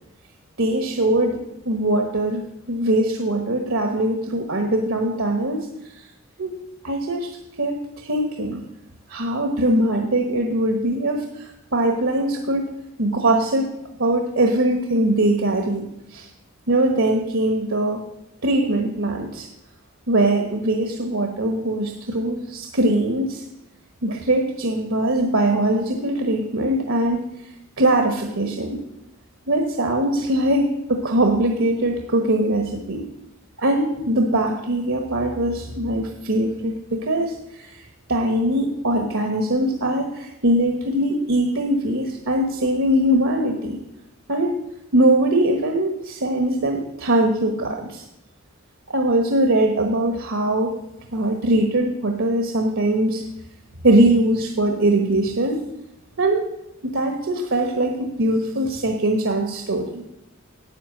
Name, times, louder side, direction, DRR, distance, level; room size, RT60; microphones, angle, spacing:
voice 1, 0.6-5.7 6.4-6.5 6.8-7.3 7.6-8.6 9.1-12.7 13.0-15.8 16.1-16.3 16.7-18.0 18.4-19.5 20.1-23.4 24.0-27.2 27.8-28.8 29.5-33.0 33.6-37.8 38.1-43.8 44.3-44.5 44.9-48.0 48.9-50.8 51.1-53.2 53.8-55.6 56.2-56.4 56.8-60.0, right 1 dB, 70° right, 4 dB, 1.2 m, -21 dB
10.0 x 8.8 x 7.6 m, 0.86 s
head